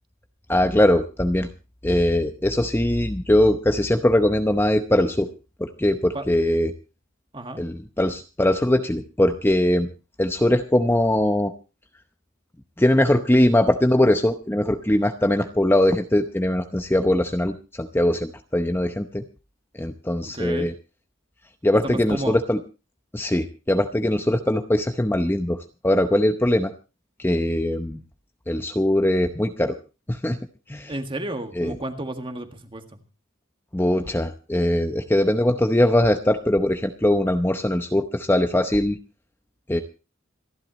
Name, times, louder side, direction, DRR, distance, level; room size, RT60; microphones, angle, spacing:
voice 1, 0.5-1.5 1.8-5.3 5.6-6.7 7.6-9.9 10.2-11.5 12.8-19.2 19.7-20.7 21.6-22.6 23.1-25.6 25.8-26.7 27.2-28.0 28.5-29.8 30.1-30.4 30.7-30.9 31.6-31.7 33.7-39.0 39.7-39.8, left 1 dB, 10° left, 6 dB, 0.7 m, -21 dB
voice 2, 20.2-20.7 21.8-22.4 30.9-33.0, right 1 dB, 25° right, 6 dB, 1.8 m, -32 dB
27.0 x 11.0 x 3.1 m, 0.32 s
head